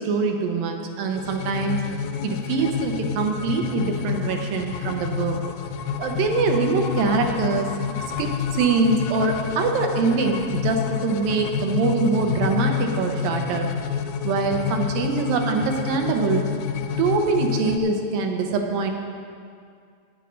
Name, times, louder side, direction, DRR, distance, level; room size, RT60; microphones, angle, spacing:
voice 1, 0.0-1.8 2.2-5.4 6.0-13.7 14.2-16.5 17.0-18.9, right 4 dB, 75° right, 3 dB, 2.4 m, -24 dB
sound 1, 1.1-17.8, left 8 dB, 85° left, 1.8 m, -28 dB
11.5 x 9.2 x 5.1 m, 2.2 s
omnidirectional pair, 4.3 m